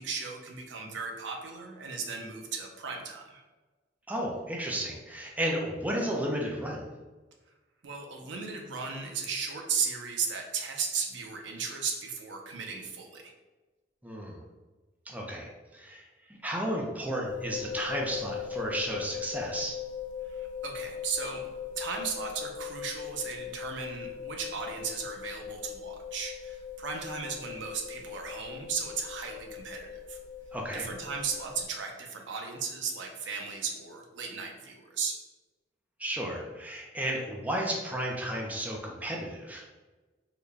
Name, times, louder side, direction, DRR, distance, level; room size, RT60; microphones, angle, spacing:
voice 1, 0.0-3.4 7.8-13.3 20.3-21.4 21.8-30.2 30.7-35.2, right 5 dB, 70° right, 2 dB, 0.6 m, -36 dB
voice 2, 4.1-6.8 14.0-14.4 15.1-19.8 30.5-30.9 36.0-39.7, right 1 dB, 10° right, -1 dB, 0.4 m, -33 dB
sound 1, 17.2-31.6, left 8 dB, 75° left, 0.7 m, -40 dB
3.8 x 2.2 x 3.3 m, 1.2 s
head